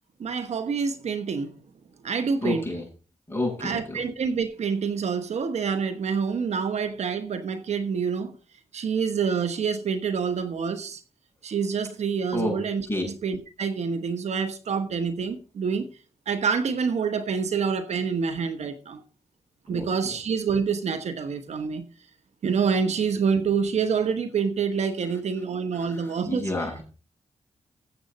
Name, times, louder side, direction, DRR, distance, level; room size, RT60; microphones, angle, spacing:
voice 1, 0.2-1.5 2.0-2.7 3.6-8.3 8.7-11.0 11.4-12.9 13.2-15.9 16.3-19.0 19.7-21.8 22.4-26.4, right 6 dB, 75° right, 1.1 m, -27 dB
voice 2, 2.4-2.9 3.3-4.0 12.3-12.5 12.9-13.0 19.7-20.1 25.7-26.8, left 1 dB, 20° left, 7.9 m, -30 dB
15.0 x 7.8 x 4.1 m
cardioid pair, 70°, 12 cm